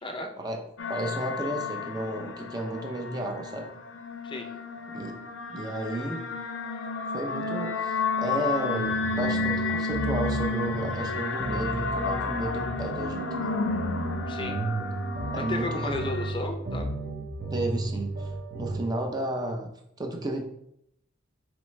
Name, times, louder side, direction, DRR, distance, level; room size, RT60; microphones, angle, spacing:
sound 1, 0.8-16.3, left 4 dB, 70° left, 0.5 m, -32 dB
voice 1, 0.9-3.7 4.9-5.2 5.5-6.2 7.1-13.5 15.3-16.1 17.5-19.7 20.0-20.4, right 1 dB, 20° right, 2 dB, 0.6 m, -32 dB
sound 2, 8.8-18.9, right 2 dB, 55° right, 0.9 m, -34 dB
voice 2, 14.3-14.6 15.4-16.9, left 2 dB, 25° left, 4 dB, 0.6 m, -33 dB
4.5 x 3.1 x 3.2 m, 0.74 s
head